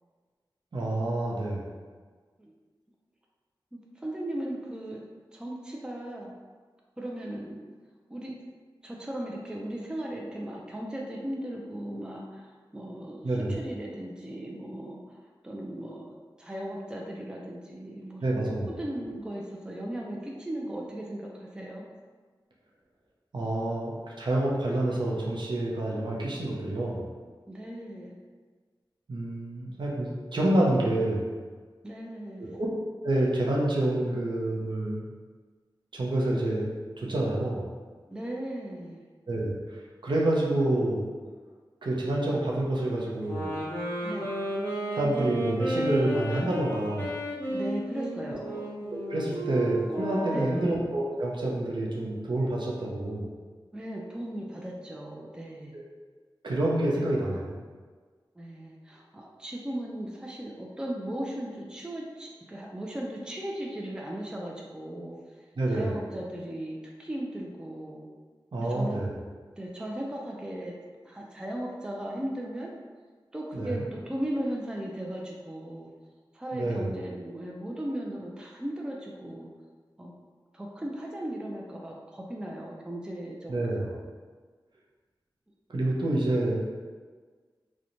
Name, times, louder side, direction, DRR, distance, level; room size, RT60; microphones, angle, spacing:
voice 1, 0.7-1.7 13.2-13.5 18.2-18.7 23.3-27.1 29.1-31.3 32.4-32.7 33.0-35.1 35.9-36.7 37.0-37.7 39.3-41.1 41.8-43.5 44.9-47.1 48.9-53.3 56.4-57.5 65.6-66.0 68.5-69.1 73.5-73.8 76.5-76.9 83.5-83.8 85.7-86.6, right 1 dB, 65° right, -4 dB, 0.5 m, -28 dB
voice 2, 3.7-5.0 5.3-6.3 7.0-7.6 8.1-8.4 8.8-21.9 27.5-28.2 31.8-32.5 38.1-39.0 44.0-44.3 47.5-48.7 50.3-50.8 53.7-55.8 58.4-68.1 68.6-69.0 69.6-70.7 71.0-72.7 73.3-75.9 76.3-79.5 80.0-80.1 80.5-84.0, right 1 dB, 10° right, -2 dB, 0.3 m, -37 dB
sound 1, 43.2-50.8, right 1 dB, 20° left, 0.7 m, -33 dB
2.9 x 2.1 x 2.5 m, 1.5 s
wide cardioid pair, 80°, 8 cm